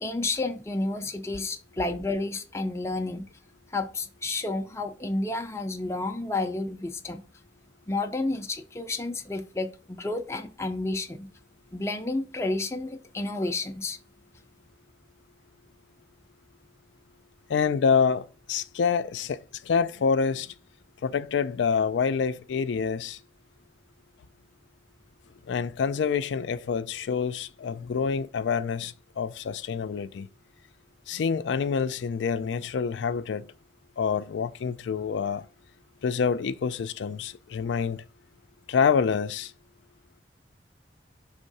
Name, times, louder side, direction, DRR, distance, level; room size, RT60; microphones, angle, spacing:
voice 1, 0.0-3.2 3.7-7.2 7.9-11.3 11.7-14.0, left 2 dB, 15° left, 0.4 m, -31 dB
voice 2, 17.5-20.5 21.0-23.2 25.5-30.3 31.1-33.5 34.0-35.4 36.0-38.0 38.7-39.5, left 6 dB, 85° left, 0.4 m, -27 dB
5.5 x 3.6 x 5.3 m
head